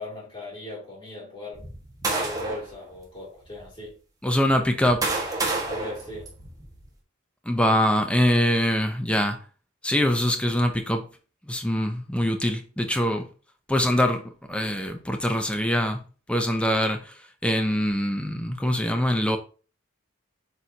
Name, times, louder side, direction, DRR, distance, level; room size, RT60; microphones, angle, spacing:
voice 1, 0.0-1.6 2.0-4.0 5.7-6.3, left 2 dB, 25° left, 2.8 m, -38 dB
sound 1, 1.5-2.7 3.5-3.6 4.5-6.8, right 3 dB, 15° right, 1.5 m, -29 dB
voice 2, 4.2-5.1 7.5-9.4 9.8-11.0 11.5-13.2 13.7-16.0 16.3-17.1 17.4-19.4, equal, 5° left, 0.7 m, -23 dB
7.7 x 4.4 x 2.8 m
head